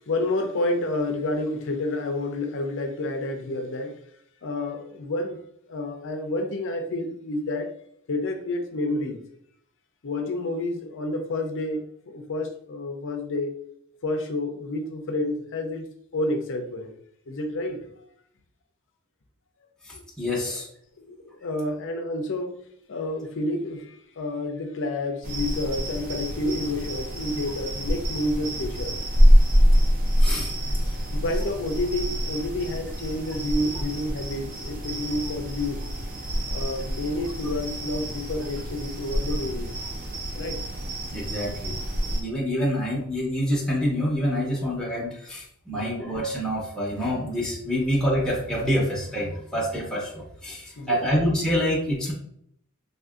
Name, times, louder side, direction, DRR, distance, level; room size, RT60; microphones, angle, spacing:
voice 1, 0.0-3.9 4.4-5.4 5.7-7.7 8.1-9.2 10.0-13.6 14.0-15.9 16.1-17.0 17.3-17.8 19.9-20.0 20.4-20.6 21.0-22.6 22.9-29.0 31.1-35.9 36.5-39.7 40.3-40.6 45.7-46.1 50.8-51.2, left 2 dB, 60° left, 0.6 m, -29 dB
voice 2, 19.8-20.7 30.2-30.5 41.1-41.8 42.1-52.1, equal, 5° left, 0.8 m, -27 dB
sound 1, 25.2-42.2, equal, 40° right, 0.6 m, -25 dB
3.6 x 2.6 x 2.4 m
head